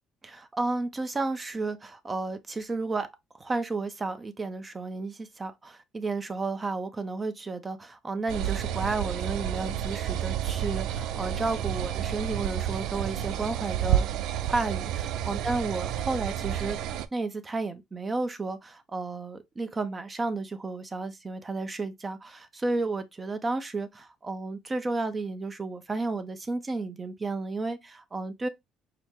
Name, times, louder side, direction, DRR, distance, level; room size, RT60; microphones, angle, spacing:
voice 1, 0.2-3.1 3.4-14.1 14.5-16.8 17.1-28.5, right 3 dB, 20° right, 0.6 m, -32 dB
sound 1, 8.3-17.1, right 10 dB, 75° right, 0.3 m, -30 dB
4.7 x 2.1 x 3.5 m
cardioid pair, 115°, 0 cm